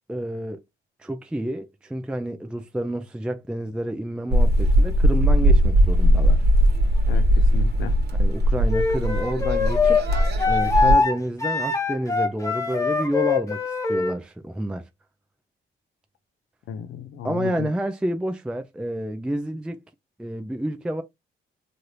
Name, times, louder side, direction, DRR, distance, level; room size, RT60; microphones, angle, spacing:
voice 1, 0.1-0.6 1.0-6.4 8.2-10.0 10.5-14.9 17.2-19.8 20.2-21.0, right 1 dB, 5° right, 0.4 m, -29 dB
sound 1, 4.3-10.9, equal, 55° right, 1.1 m, -19 dB
voice 2, 7.1-7.9 16.7-17.7, left 7 dB, 75° left, 0.7 m, -34 dB
Wind instrument woodwind instrument, 8.7-14.2, left 4 dB, 15° left, 0.9 m, -23 dB
3.2 x 2.5 x 2.8 m
cardioid pair, 90°, 20 cm